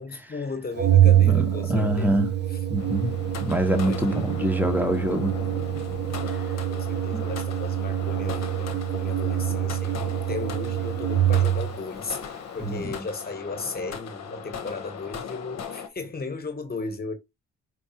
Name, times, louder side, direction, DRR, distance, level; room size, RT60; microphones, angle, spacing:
voice 1, 0.0-2.2 2.5-2.6 3.8-4.3 6.7-17.1, left 3 dB, 30° left, 1.3 m, -36 dB
Organ, 0.8-11.8, right 11 dB, 35° right, 0.5 m, -25 dB
voice 2, 1.3-2.3 2.7-3.1 3.4-5.3 12.6-12.9, right 1 dB, 5° right, 1.0 m, -25 dB
sound 1, 2.8-15.9, left 7 dB, 60° left, 0.9 m, -38 dB
4.7 x 2.6 x 2.8 m
cardioid pair, 90°, 30 cm